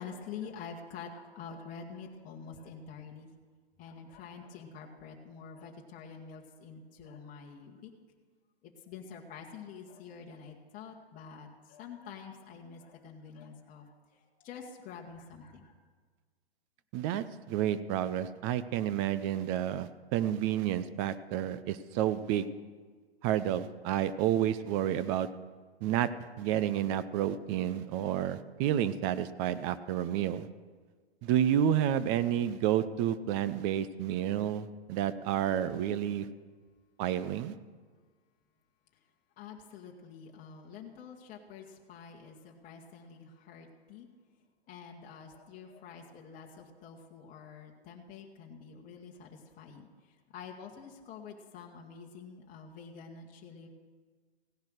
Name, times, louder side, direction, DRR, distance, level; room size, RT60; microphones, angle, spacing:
voice 1, 0.0-3.3 3.8-7.9 8.8-15.7 39.4-44.1 44.7-53.7, left 6 dB, 25° left, 0 dB, 1.6 m, -47 dB
voice 2, 16.9-22.5 23.2-25.3 25.8-26.1 26.4-30.5 31.2-36.3 37.0-37.5, right 10 dB, 30° right, 14 dB, 0.6 m, -30 dB
16.5 x 10.5 x 6.4 m, 1.5 s
hypercardioid pair, 120°, 32 cm